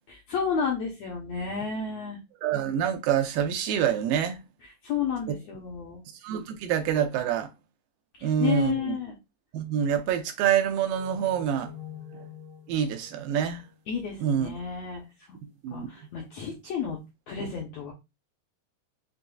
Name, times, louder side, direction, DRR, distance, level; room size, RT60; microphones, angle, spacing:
voice 1, 0.3-2.2 4.6-6.0 8.2-9.1 13.9-15.4 15.7-17.0 17.3-17.9, left 6 dB, 75° left, 1.6 m, -31 dB
voice 2, 2.4-4.4 5.3-5.4 6.2-7.5 8.2-9.0 9.5-11.7 12.7-13.6 14.2-14.5 15.6-15.9, right 9 dB, 85° right, 2.4 m, -26 dB
sound 1, 10.9-14.3, left 5 dB, 65° right, 0.7 m, -46 dB
6.5 x 2.5 x 2.3 m
omnidirectional pair, 3.9 m